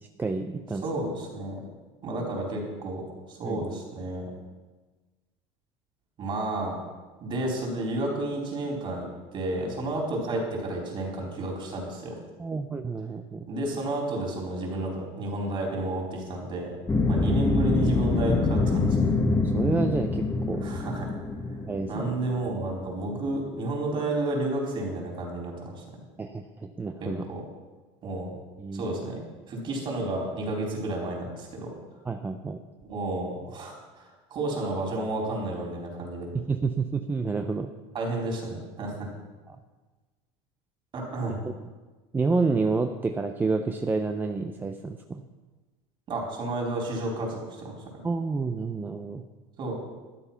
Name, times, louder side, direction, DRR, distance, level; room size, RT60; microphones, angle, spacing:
voice 1, 0.2-0.8 3.4-3.6 12.4-13.5 19.2-20.7 21.7-22.1 26.2-27.2 28.6-28.8 32.1-32.6 36.3-37.7 39.5-39.6 41.3-41.4 42.1-45.2 48.0-49.2, right 4 dB, 15° right, 6 dB, 0.6 m, -29 dB
voice 2, 0.8-1.5 2.0-3.0 3.3-4.3 6.2-6.8 7.2-12.1 13.5-16.7 17.1-19.1 20.5-21.1 21.9-25.8 27.0-27.4 28.0-28.3 28.7-29.2 29.5-31.7 32.9-36.3 37.9-39.1 40.9-41.4 46.1-47.7 49.6-49.8, right 2 dB, 35° right, -1 dB, 4.4 m, -31 dB
sound 1, 16.9-23.1, left 3 dB, 15° left, 1.2 m, -25 dB
12.5 x 10.5 x 5.8 m, 1.3 s
cardioid pair, 140°, 14 cm